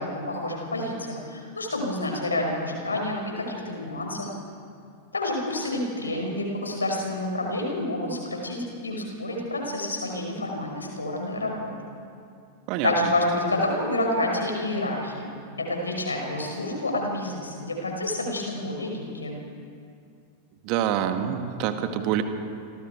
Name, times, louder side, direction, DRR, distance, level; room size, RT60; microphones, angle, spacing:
voice 1, 0.0-4.3 5.1-11.7 12.8-15.3 15.6-19.4, left 1 dB, 75° left, 1 dB, 5.5 m, -28 dB
voice 2, 20.7-22.2, right 10 dB, 45° right, 7 dB, 2.1 m, -26 dB
28.5 x 26.0 x 4.7 m, 2.4 s
figure-of-eight pair, 90°, 0 cm